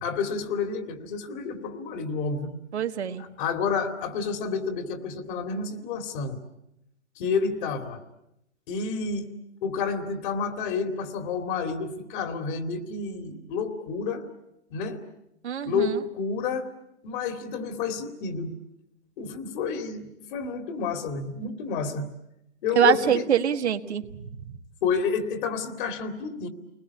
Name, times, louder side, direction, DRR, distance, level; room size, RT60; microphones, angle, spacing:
voice 1, 0.0-2.6 3.2-6.4 7.2-8.0 8.7-9.3 9.6-14.3 14.7-15.0 15.6-16.7 17.0-18.5 19.2-22.1 22.6-23.2 24.8-26.5, left 5 dB, 45° left, 7 dB, 2.9 m, -29 dB
voice 2, 2.7-3.2 15.4-16.0 22.7-24.0, right 9 dB, 75° right, 7 dB, 1.6 m, -24 dB
29.5 x 20.5 x 8.5 m, 0.83 s
hypercardioid pair, 120°, 34 cm